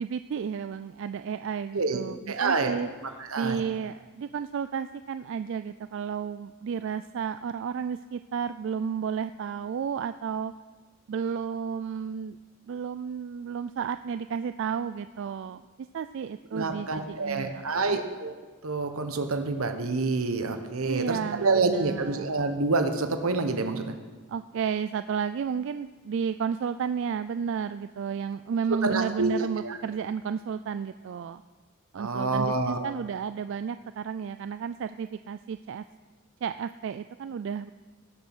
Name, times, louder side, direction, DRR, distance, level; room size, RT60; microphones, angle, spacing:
voice 1, 0.0-2.9 3.4-10.5 11.1-12.4 12.7-15.7 15.9-18.0 20.8-22.3 24.3-31.4 31.9-35.8 36.4-37.7, right 7 dB, 60° right, 11 dB, 0.3 m, -32 dB
voice 2, 2.3-3.6 16.5-18.3 18.6-23.9 28.7-29.8 31.9-32.8, right 3 dB, 85° right, 7 dB, 1.3 m, -28 dB
17.0 x 7.2 x 6.2 m, 1.3 s
head